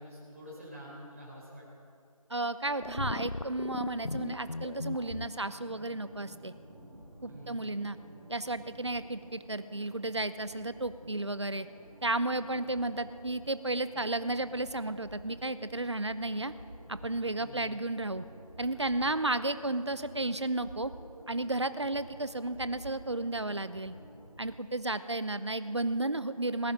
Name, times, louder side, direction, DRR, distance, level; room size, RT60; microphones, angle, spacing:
voice 1, 0.0-1.6 7.3-7.6 17.3-17.8, equal, 25° right, -6 dB, 4.1 m, -47 dB
voice 2, 2.3-6.5 7.2-8.0 8.3-11.7 12.0-16.5 16.9-18.2 18.6-20.9 21.3-23.9 24.4-26.7, right 2 dB, 50° right, 13 dB, 0.7 m, -33 dB
sound 1, 2.8-5.3, left 2 dB, 55° left, 0.4 m, -37 dB
sound 2, 5.2-24.4, right 1 dB, 10° left, 4.7 m, -51 dB
19.0 x 10.5 x 5.4 m, 2.4 s
figure-of-eight pair, 180°, 19 cm